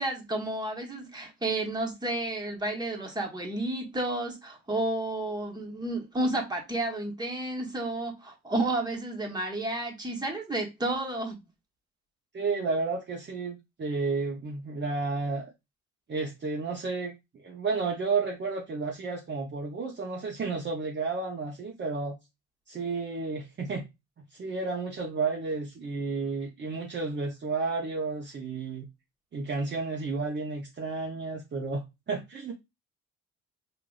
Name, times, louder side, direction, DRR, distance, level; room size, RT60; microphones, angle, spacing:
voice 1, 0.0-11.4, right 2 dB, 15° right, 1.2 m, -31 dB
voice 2, 12.3-15.5 16.1-17.1 17.4-22.2 22.7-23.9 24.2-28.9 29.3-32.5, right 4 dB, 35° right, 0.8 m, -32 dB
4.8 x 2.5 x 2.3 m
cardioid pair, 90°, 30 cm